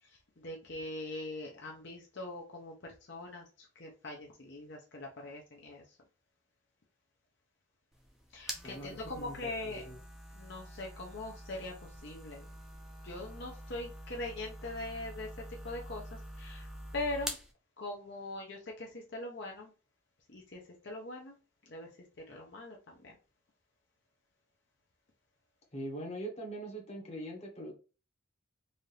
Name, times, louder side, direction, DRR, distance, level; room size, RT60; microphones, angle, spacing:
voice 1, 0.0-6.0 8.3-9.8 10.3-12.5 13.0-15.3 15.6-17.4 17.8-19.7 20.3-21.4 21.7-21.9 22.3-23.2, left 2 dB, 55° left, -1 dB, 0.8 m, -42 dB
sound 1, 7.9-17.5, equal, ahead, 0.5 m, -46 dB
voice 2, 8.6-10.0 25.7-27.7, right 1 dB, 30° left, 0 dB, 1.0 m, -42 dB
4.1 x 2.5 x 3.3 m, 0.33 s
head